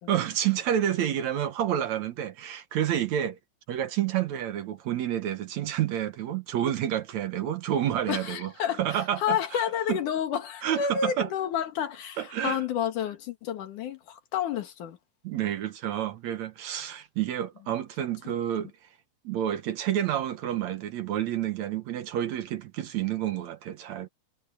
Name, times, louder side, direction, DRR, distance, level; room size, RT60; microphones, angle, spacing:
voice 1, 0.1-3.4 3.7-8.5 8.8-9.6 9.9-10.0 10.6-11.3 12.2-12.6 15.2-18.7 19.2-24.1, right 11 dB, 65° right, 2.3 m, -29 dB
voice 2, 8.1-15.0, left 8 dB, 75° left, 3.2 m, -30 dB
omnidirectional pair, 3.7 m